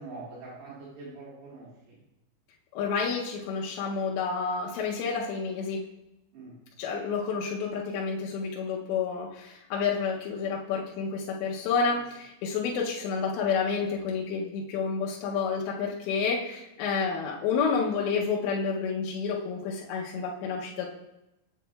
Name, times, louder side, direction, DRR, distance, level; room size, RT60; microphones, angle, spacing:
voice 1, 0.0-2.0 6.3-6.5, right 3 dB, 75° right, -6 dB, 3.6 m, -44 dB
voice 2, 2.7-5.8 6.8-20.9, left 5 dB, 85° left, -2 dB, 3.0 m, -29 dB
8.1 x 7.5 x 2.2 m, 0.90 s
omnidirectional pair, 5.0 m